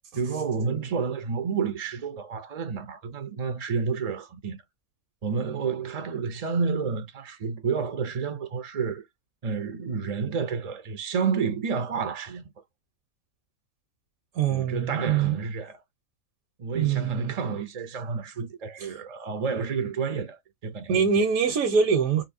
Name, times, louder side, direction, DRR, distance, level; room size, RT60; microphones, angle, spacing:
voice 1, 0.1-4.6 5.2-9.1 9.4-12.5 14.5-15.8 16.6-21.3, right 5 dB, 55° right, 0.4 m, -30 dB
voice 2, 14.3-15.4 16.7-17.3 18.8-18.9 20.9-22.2, right 6 dB, 80° right, 1.2 m, -24 dB
4.0 x 2.6 x 2.5 m
omnidirectional pair, 1.5 m